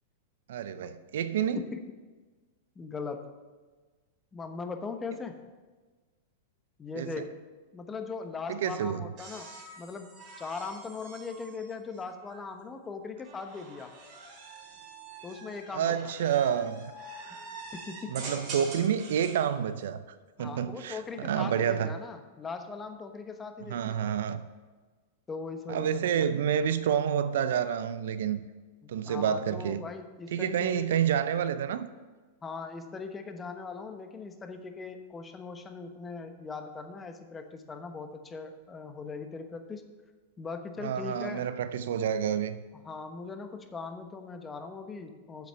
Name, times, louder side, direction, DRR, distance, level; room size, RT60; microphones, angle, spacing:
voice 1, 0.5-1.6 7.0-7.2 8.5-9.1 15.7-16.9 18.1-20.0 20.4-21.9 23.7-24.4 25.7-28.4 28.9-29.8 30.3-31.9 40.8-42.6, right 8 dB, 70° right, 0.6 m, -29 dB
voice 2, 2.8-3.4 4.3-5.4 6.8-7.4 7.7-9.5 9.8-10.1 10.4-13.9 15.2-16.1 17.3-17.4 17.7-18.3 20.4-24.0 25.3-26.3 28.8-30.9 32.4-39.9 40.4-41.5 42.7-45.5, left 4 dB, 20° left, 1.0 m, -40 dB
sound 1, 9.2-12.4 13.2-19.4 20.9-21.4, right 3 dB, 40° right, 3.7 m, -45 dB
7.5 x 7.4 x 7.1 m
hypercardioid pair, 110°, 0 cm